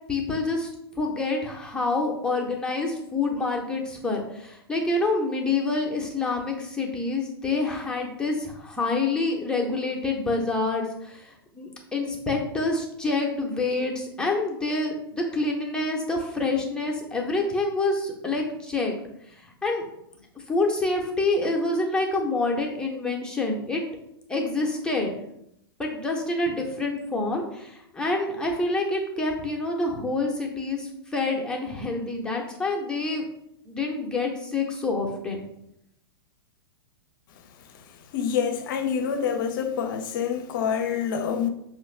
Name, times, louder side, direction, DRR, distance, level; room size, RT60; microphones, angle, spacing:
voice 1, 0.1-0.7 1.0-19.0 19.3-19.8 20.3-23.8 24.3-25.2 25.8-33.2 33.6-35.5, left 3 dB, 5° left, 0.8 m, -27 dB
voice 2, 38.1-41.5, left 7 dB, 55° left, 0.5 m, -26 dB
5.4 x 2.5 x 3.2 m
hypercardioid pair, 110°, 13 cm